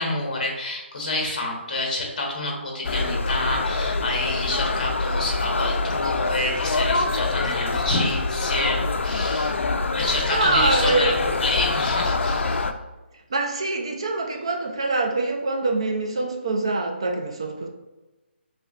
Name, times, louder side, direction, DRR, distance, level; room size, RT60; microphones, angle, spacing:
voice 1, 0.0-9.5 9.9-12.6, left 2 dB, 40° left, 0.9 m, -28 dB
sound 1, 2.8-12.7, left 3 dB, 85° left, 0.3 m, -25 dB
voice 2, 10.3-11.1 13.3-17.7, right 3 dB, 25° right, 0.3 m, -24 dB
3.8 x 3.2 x 2.3 m
hypercardioid pair, 175°, 6 cm